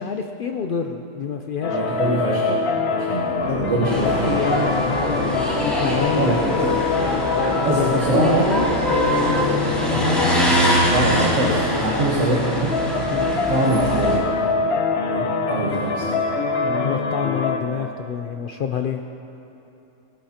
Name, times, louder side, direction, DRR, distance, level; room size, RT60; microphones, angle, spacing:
voice 1, 0.0-1.8 3.5-6.3 7.7-8.7 13.1-13.3 16.6-19.0, left 7 dB, 80° left, 4 dB, 0.4 m, -27 dB
sound 1, 1.6-17.6, left 4 dB, 55° left, 1.0 m, -25 dB
voice 2, 1.7-4.6 6.1-6.6 7.6-8.5 9.9-10.3 10.9-12.8 13.3-14.3 15.1-16.2, right 2 dB, 60° right, -3 dB, 1.6 m, -24 dB
sound 2, 3.4-10.9, right 1 dB, 30° right, 2.0 m, -29 dB
sound 3, 3.8-14.2, left 1 dB, ahead, 2.6 m, -24 dB
19.0 x 12.0 x 2.9 m, 2.9 s
omnidirectional pair, 1.5 m